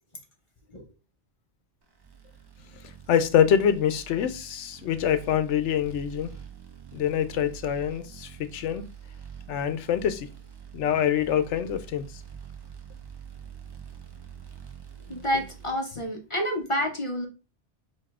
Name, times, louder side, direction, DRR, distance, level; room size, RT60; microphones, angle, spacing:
sound 1, 2.0-15.7, right 8 dB, 35° right, 0.4 m, -45 dB
voice 1, 3.1-6.3 6.9-8.8 9.5-10.3 10.7-12.1, left 9 dB, 85° left, 0.9 m, -25 dB
voice 2, 15.1-17.3, equal, 35° left, 0.6 m, -29 dB
4.7 x 2.7 x 3.5 m
omnidirectional pair, 1.2 m